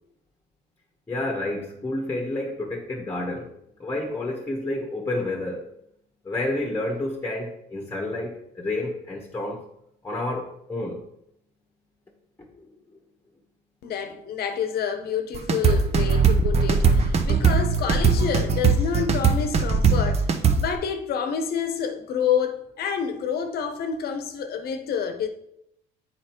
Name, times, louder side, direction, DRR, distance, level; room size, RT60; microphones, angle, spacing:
voice 1, 1.1-3.5 3.8-5.7 6.2-9.6 10.0-11.0, left 2 dB, 10° left, 1.3 m, -29 dB
voice 2, 13.8-20.3 20.6-25.3, left 7 dB, 65° left, 1.0 m, -28 dB
sound 1, 15.3-20.7, right 5 dB, 40° right, 0.7 m, -19 dB
7.6 x 4.3 x 4.5 m
cardioid pair, 110°, 17 cm